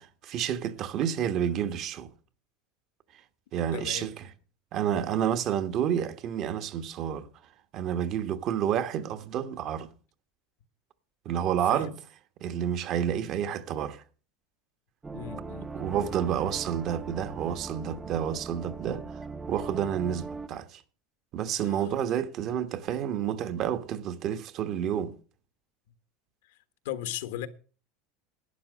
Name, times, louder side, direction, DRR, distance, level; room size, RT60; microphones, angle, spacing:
voice 1, 0.0-2.1 3.5-4.2 4.7-7.3 7.7-9.9 11.2-11.9 12.4-14.0 15.7-19.0 19.5-20.8 21.3-25.1, right 9 dB, 45° right, 1.2 m, -29 dB
voice 2, 3.7-4.1 11.7-11.9 15.1-15.9 21.6-21.8 26.8-27.5, left 12 dB, 85° left, 1.3 m, -37 dB
sound 1, 15.0-20.5, right 4 dB, 15° right, 0.6 m, -40 dB
11.5 x 9.1 x 6.3 m
supercardioid pair, 130°, 0 cm